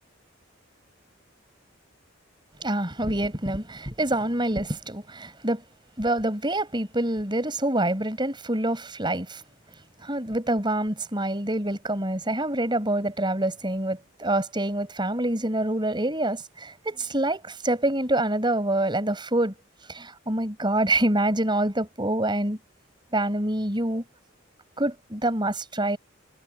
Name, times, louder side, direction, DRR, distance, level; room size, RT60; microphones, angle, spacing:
voice 1, 2.6-5.6 6.0-9.4 10.0-19.5 19.9-22.6 23.1-24.0 24.8-26.0, right 1 dB, 25° right, 5.9 m, -26 dB
head